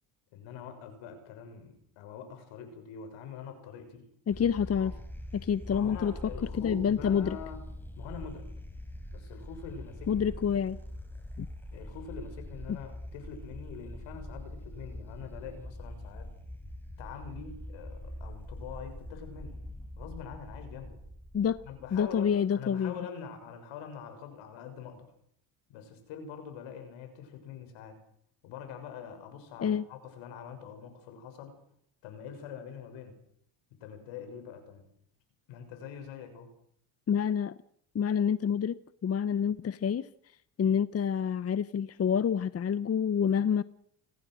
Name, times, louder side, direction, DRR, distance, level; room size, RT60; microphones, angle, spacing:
voice 1, 0.3-4.1 4.7-4.9 5.7-7.6 8.0-8.5 9.1-10.3 11.7-16.3 17.0-19.6 20.0-21.0 21.6-25.1 25.7-28.0 28.4-31.5 32.0-33.2 33.7-34.9 35.5-36.5, left 7 dB, 75° left, 7 dB, 6.4 m, -44 dB
voice 2, 4.3-4.9 5.4-6.1 6.5-7.4 10.1-10.8 11.4-11.5 21.3-21.6 21.9-22.9 29.6-29.8 37.1-37.6 37.9-40.1 40.6-43.6, left 7 dB, 30° left, 16 dB, 0.9 m, -28 dB
sound 1, 4.3-22.4, left 1 dB, 5° left, 4.7 m, -44 dB
29.5 x 19.5 x 6.4 m, 0.68 s
supercardioid pair, 80°, 47 cm